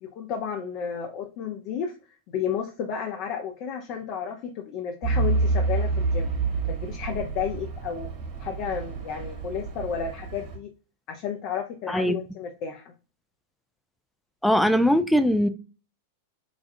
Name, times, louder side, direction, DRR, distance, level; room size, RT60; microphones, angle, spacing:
voice 1, 0.0-1.9 2.3-6.3 6.7-8.1 8.4-10.7 11.1-12.8, left 7 dB, 50° left, 0.6 m, -32 dB
Truck / Idling, 5.0-10.6, right 3 dB, 50° right, 1.3 m, -28 dB
voice 2, 14.4-15.5, equal, ahead, 0.4 m, -20 dB
5.0 x 2.3 x 2.6 m
hypercardioid pair, 100°, 0 cm